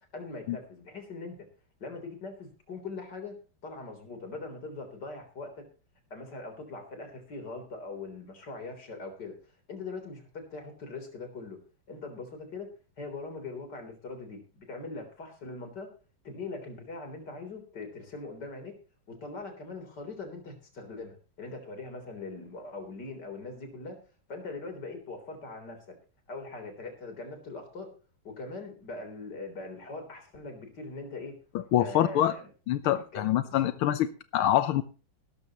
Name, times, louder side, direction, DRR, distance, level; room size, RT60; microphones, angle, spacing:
voice 1, 0.1-1.4 1.8-3.4 3.6-5.6 6.1-9.3 9.7-11.6 11.9-12.7 13.0-15.9 16.2-18.7 19.1-24.0 24.3-26.0 26.3-27.9 28.2-31.4 31.8-32.5 32.8-33.7, left 3 dB, 55° left, 5 dB, 4.2 m, -41 dB
voice 2, 31.7-32.3 32.7-34.1 34.3-34.8, left 12 dB, 90° left, 11 dB, 1.7 m, -25 dB
17.0 x 13.0 x 3.0 m, 0.35 s
omnidirectional pair, 2.2 m